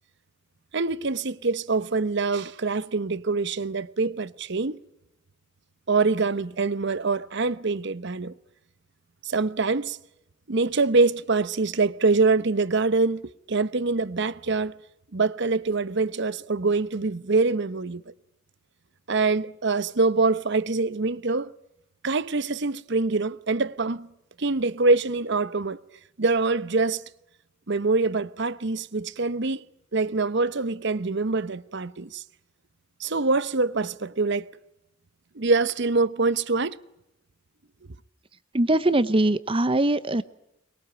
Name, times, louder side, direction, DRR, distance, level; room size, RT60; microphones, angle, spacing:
voice 1, 0.7-4.8 5.9-8.3 9.2-10.0 10.5-14.7 15.1-18.1 19.1-21.5 22.0-24.1 24.4-25.8 26.2-27.0 27.7-29.6 29.9-32.2 33.0-34.5 35.3-36.8, right 3 dB, 60° right, 0.9 m, -24 dB
voice 2, 38.5-40.2, right 1 dB, 25° right, 0.8 m, -22 dB
24.0 x 22.0 x 8.9 m
head